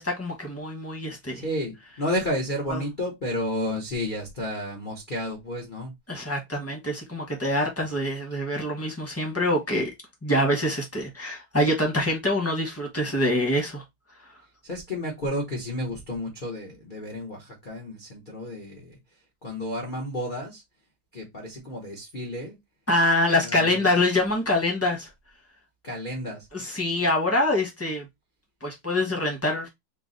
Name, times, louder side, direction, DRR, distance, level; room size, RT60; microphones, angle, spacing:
voice 1, 0.0-1.4 2.7-2.8 6.1-9.9 10.2-13.8 14.2-14.4 22.9-25.1 26.5-28.1 28.6-29.7, left 1 dB, 15° left, 0.6 m, -25 dB
voice 2, 1.4-5.9 14.6-19.0 19.4-20.6 21.1-22.6 23.4-23.9 25.8-26.5, left 1 dB, 70° left, 0.4 m, -31 dB
4.5 x 2.0 x 3.9 m
omnidirectional pair, 2.3 m